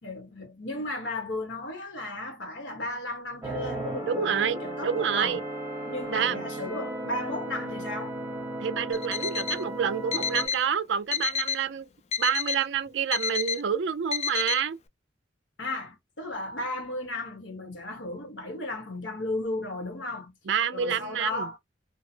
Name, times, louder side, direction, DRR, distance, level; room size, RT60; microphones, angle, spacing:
voice 1, 0.0-5.4 5.8-8.2 15.6-20.3 20.7-21.6, left 2 dB, 80° left, 1.1 m, -35 dB
sound 1, 3.4-10.5, right 1 dB, 15° right, 0.8 m, -35 dB
voice 2, 4.0-5.4 6.1-6.4 8.6-11.9 12.2-14.8 20.5-21.5, right 7 dB, 75° right, 0.4 m, -28 dB
Alarm, 8.9-9.6 10.1-10.6 11.1-11.6 12.1-12.6 13.1-13.6 14.1-14.6, left 7 dB, 35° left, 0.3 m, -30 dB
2.8 x 2.0 x 2.7 m
head